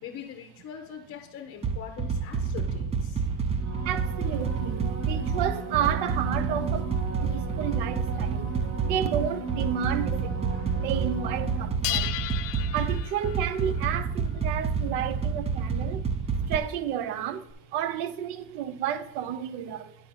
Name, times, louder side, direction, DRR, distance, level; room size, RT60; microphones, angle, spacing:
voice 1, 0.0-3.2 9.2-9.6 10.5-10.9, left 8 dB, 35° left, 0.7 m, -43 dB
sound 1, 1.6-16.6, right 5 dB, 15° right, 0.4 m, -29 dB
sound 2, 2.8-4.7 5.3-7.0 7.6-7.9 8.4-8.5 8.7-8.8 9.1-10.1 10.4-11.0 11.3-19.2, left 15 dB, 80° left, 0.6 m, -40 dB
sound 3, 3.5-12.2 17.5-17.6, right 4 dB, 45° right, 1.4 m, -37 dB
voice 2, 3.8-8.6 8.8-12.1 12.7-16.1 16.5-20.0, right 10 dB, 80° right, 0.7 m, -31 dB
10.0 x 3.9 x 5.7 m
cardioid pair, 130°, 39 cm